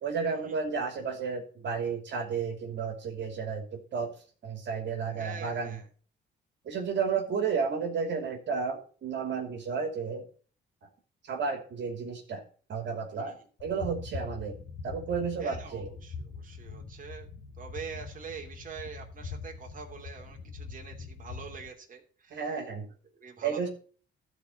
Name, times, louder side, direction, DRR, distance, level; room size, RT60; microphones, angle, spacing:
voice 1, 0.0-4.1 4.4-5.8 6.6-10.3 11.2-12.4 12.7-14.6 14.8-15.9 22.3-22.9 23.4-23.7, right 5 dB, 65° right, 2 dB, 2.9 m, -32 dB
voice 2, 5.2-5.9 13.2-13.4 15.4-17.3 17.6-22.5 23.1-23.7, right 5 dB, 40° right, 1 dB, 2.9 m, -45 dB
sound 1, 13.6-21.7, left 4 dB, 85° left, 2.6 m, -43 dB
13.0 x 4.7 x 8.3 m, 0.42 s
cardioid pair, 90°, 20 cm